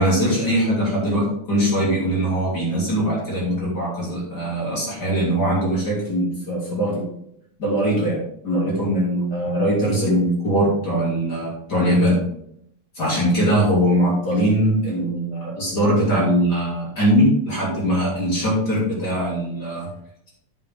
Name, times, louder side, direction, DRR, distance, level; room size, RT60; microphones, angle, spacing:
voice 1, 0.0-7.1 7.6-12.2 13.0-19.9, equal, 30° left, -5 dB, 3.4 m, -21 dB
9.5 x 7.2 x 3.8 m, 0.72 s
omnidirectional pair, 3.9 m